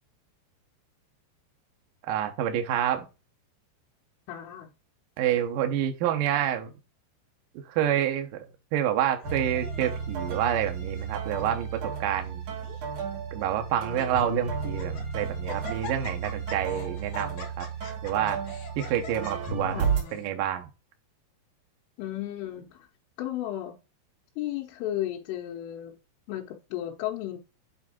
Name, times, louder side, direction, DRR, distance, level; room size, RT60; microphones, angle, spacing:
voice 1, 2.0-3.1 5.2-6.7 7.5-12.4 13.3-17.7 18.0-18.4 18.8-20.7, right 10 dB, 75° right, 2.0 m, -28 dB
voice 2, 4.3-4.7 19.7-20.2 22.0-22.9 23.2-23.8 24.4-25.9 26.3-27.4, left 13 dB, 90° left, 3.5 m, -34 dB
Laughter, 9.2-10.0 10.7-11.1 11.4-11.5 12.2-12.8 13.4-13.5 13.8-14.2 14.6-15.1 15.5-20.3, left 2 dB, 60° left, 3.7 m, -43 dB
sound 1, 9.2-20.0, right 5 dB, 55° right, 3.7 m, -33 dB
8.7 x 3.5 x 4.3 m
omnidirectional pair, 5.4 m